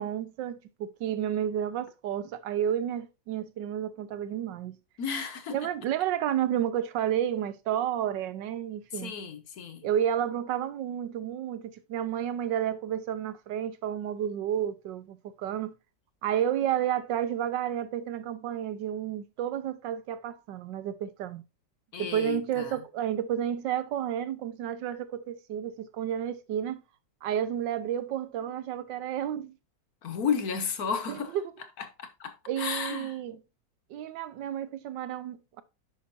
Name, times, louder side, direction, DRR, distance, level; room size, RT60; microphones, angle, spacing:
voice 1, 0.0-4.8 5.5-9.1 9.8-15.8 16.2-21.4 22.0-26.8 27.2-29.6 31.1-31.4 32.5-33.4 33.9-35.6, right 10 dB, 70° right, 1.3 m, -31 dB
voice 2, 5.0-5.7 8.9-9.9 21.9-22.8 30.0-31.4 31.8-33.2, left 6 dB, 55° left, 1.3 m, -33 dB
9.8 x 5.7 x 2.6 m
omnidirectional pair, 2.2 m